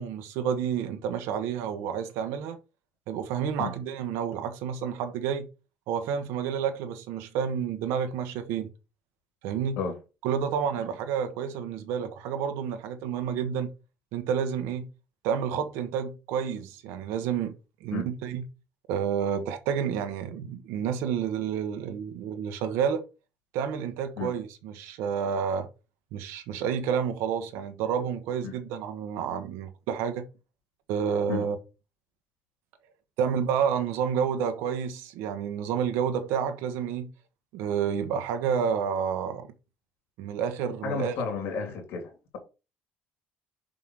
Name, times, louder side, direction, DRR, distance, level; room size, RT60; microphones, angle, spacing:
voice 1, 0.0-2.6 3.1-5.5 5.9-8.7 9.4-9.8 10.2-13.7 14.1-14.9 15.2-18.5 18.9-23.0 23.5-25.7 26.1-30.2 30.9-31.6 33.2-37.1 37.5-39.5 40.2-41.2, right 7 dB, 90° right, 1.2 m, -29 dB
voice 2, 40.8-42.4, left 5 dB, 80° left, 3.0 m, -32 dB
5.6 x 5.1 x 6.3 m
cardioid pair, 110°, 4 cm